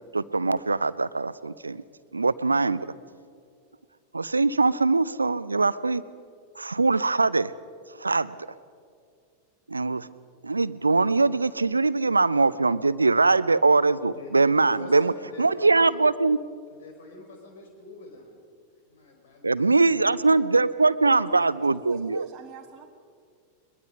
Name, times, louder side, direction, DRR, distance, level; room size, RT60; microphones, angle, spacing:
voice 1, 0.1-1.8 2.1-2.9 4.1-6.0 6.6-7.5 8.0-8.3 9.7-10.1 10.4-15.1 15.4-16.4 19.4-22.3, right 3 dB, 80° right, 18 dB, 0.5 m, -22 dB
voice 2, 14.7-16.0 16.7-18.3 18.9-20.3, left 4 dB, 60° left, 2 dB, 4.7 m, -45 dB
voice 3, 21.3-22.9, right 7 dB, 25° right, 0 dB, 1.3 m, -45 dB
22.0 x 21.5 x 5.6 m, 2.2 s
figure-of-eight pair, 90°, 0 cm